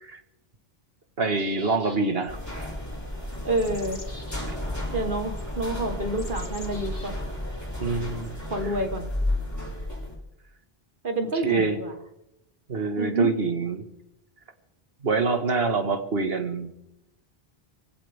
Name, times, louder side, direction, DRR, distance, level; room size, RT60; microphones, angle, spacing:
voice 1, 1.2-2.7 4.4-4.6 7.8-8.4 11.3-11.8 12.7-13.9 15.0-16.7, right 4 dB, 75° right, 7 dB, 1.9 m, -26 dB
sound 1, 1.4-2.3 3.3-4.5 5.4-5.5 6.2-7.1 8.2-8.3, left 2 dB, 60° left, 2.8 m, -46 dB
sound 2, 2.3-10.1, left 1 dB, 15° left, 5.5 m, -32 dB
voice 2, 3.4-4.0 4.9-7.1 8.5-9.1 11.0-11.9 13.0-13.3, right 1 dB, 55° right, 4 dB, 1.6 m, -28 dB
23.5 x 16.5 x 3.6 m, 0.87 s
omnidirectional pair, 1.0 m